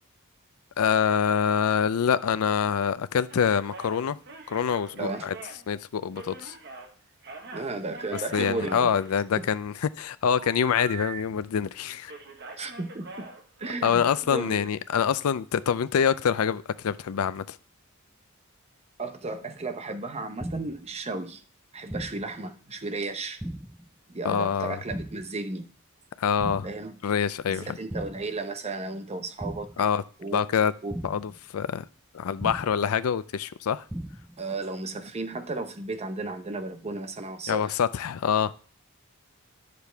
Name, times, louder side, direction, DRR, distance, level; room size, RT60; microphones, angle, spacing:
voice 1, 0.8-4.2 4.5-5.3 5.7-6.5 8.3-12.1 13.8-17.6 24.2-24.8 26.2-26.7 27.0-27.8 29.8-30.0 30.3-30.7 31.0-31.8 32.1-33.8 37.5-38.5, left 7 dB, 90° left, 0.4 m, -25 dB
sound 1, 3.3-6.9 7.2-9.7 10.4-11.7 12.0-14.2, right 4 dB, 55° right, 1.4 m, -43 dB
voice 2, 5.0-5.3 7.5-8.9 9.4-9.5 12.6-13.3 13.6-14.7 19.0-21.4 21.7-23.4 24.1-25.7 26.6-27.0 27.5-29.9 30.2-30.4 30.8-30.9 34.4-37.8, right 3 dB, 30° right, 0.8 m, -34 dB
sound 2, 20.4-20.9 21.9-22.4 23.4-23.9 24.9-25.4 26.4-26.9 27.9-28.4 29.4-29.9 30.9-31.4 32.4-32.9 33.9-34.4, right 1 dB, 5° right, 0.3 m, -37 dB
9.8 x 6.8 x 3.4 m
head